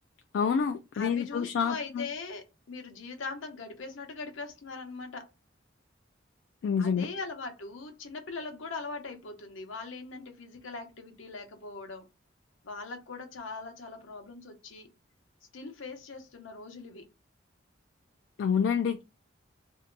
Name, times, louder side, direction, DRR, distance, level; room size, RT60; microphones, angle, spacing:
voice 1, 0.3-2.1 6.6-7.1 18.4-19.0, left 6 dB, 70° left, 0.3 m, -28 dB
voice 2, 0.9-5.3 6.8-12.1 12.6-14.9 15.5-17.0, left 4 dB, 85° left, 0.8 m, -41 dB
2.7 x 2.2 x 3.7 m
head